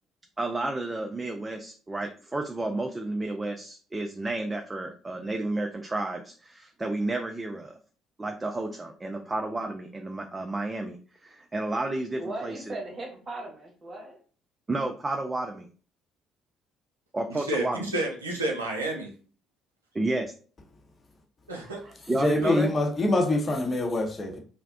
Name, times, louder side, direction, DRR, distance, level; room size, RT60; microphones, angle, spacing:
voice 1, 0.4-7.7 8.2-12.7 14.7-15.7 17.1-17.8 19.9-20.3 22.1-22.7, right 2 dB, 20° right, 0.3 m, -31 dB
voice 2, 12.2-14.2 21.6-22.1 22.4-22.7, right 2 dB, 35° right, 0.8 m, -39 dB
voice 3, 17.3-19.1 21.5-21.8 22.4-22.5, right 1 dB, 85° right, 0.4 m, -30 dB
voice 4, 22.2-24.4, left 2 dB, 30° left, 0.7 m, -25 dB
2.4 x 2.0 x 2.5 m
figure-of-eight pair, 50°, 0 cm